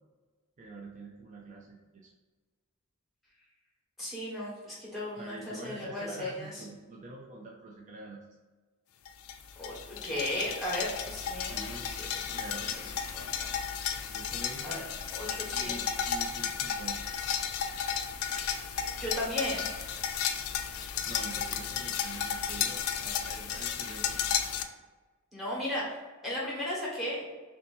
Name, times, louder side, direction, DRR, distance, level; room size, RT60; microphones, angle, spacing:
voice 1, 0.6-2.1 5.2-8.4 11.4-11.9 12.3-12.9 14.1-14.9 15.5-17.0 21.0-24.4, right 2 dB, 35° right, -2 dB, 0.4 m, -46 dB
voice 2, 4.0-6.6 9.6-12.1 13.1-13.5 14.6-14.8 15.2-15.8 19.0-19.6 25.3-26.0 26.2-27.2, left 1 dB, ahead, -6 dB, 1.2 m, -35 dB
sound 1, 9.0-24.6, left 8 dB, 75° left, 0.4 m, -33 dB
3.2 x 2.8 x 4.2 m, 1.3 s
head